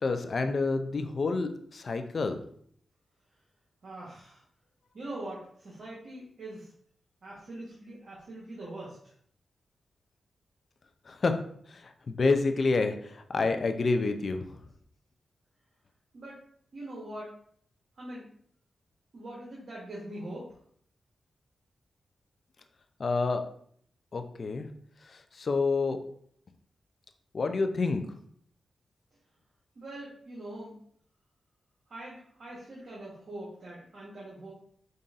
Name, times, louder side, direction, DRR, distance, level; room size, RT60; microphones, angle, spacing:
voice 1, 0.0-2.4 11.1-11.4 11.7-14.4 23.0-23.4 24.1-24.7 25.1-26.0 27.3-28.0, left 3 dB, 60° left, 7 dB, 0.4 m, -28 dB
voice 2, 3.8-4.4 4.9-6.7 7.2-9.1 16.1-16.4 16.7-17.3 18.0-18.3 19.1-20.6 29.7-30.8 31.9-34.5, right 1 dB, 70° right, -6 dB, 1.1 m, -42 dB
5.3 x 2.6 x 2.4 m, 0.62 s
cardioid pair, 55°, 0 cm